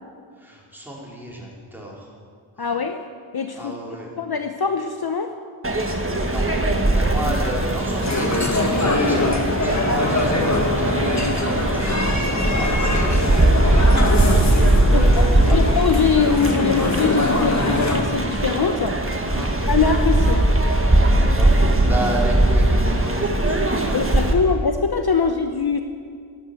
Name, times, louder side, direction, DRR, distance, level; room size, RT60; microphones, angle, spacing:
voice 1, 0.3-2.2 2.6-2.7 3.5-4.1 6.2-6.4 6.9-10.5 10.8-14.3 14.9-15.7 19.3-19.6 21.1-24.4, right 1 dB, 5° right, -4 dB, 4.7 m, -32 dB
voice 2, 2.6-3.0 3.3-3.7 4.2-5.3 14.9-19.0 19.4-20.5 23.9-25.8, left 6 dB, 50° left, 7 dB, 0.9 m, -22 dB
sound 1, 5.6-24.3, right 1 dB, 25° right, 1.8 m, -20 dB
sound 2, 8.0-18.0, left 2 dB, 35° left, 1.8 m, -23 dB
11.5 x 11.5 x 8.5 m, 2.1 s
cardioid pair, 40°, 47 cm